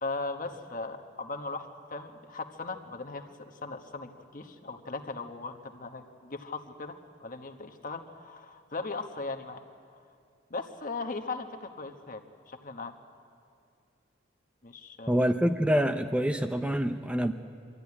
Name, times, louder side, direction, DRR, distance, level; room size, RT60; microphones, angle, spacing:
voice 1, 0.0-7.0 7.2-9.6 10.5-12.9 14.6-15.2, left 3 dB, 45° left, 6 dB, 1.2 m, -38 dB
voice 2, 15.1-17.3, equal, 5° right, 6 dB, 0.5 m, -26 dB
23.0 x 14.0 x 9.8 m, 2.4 s
head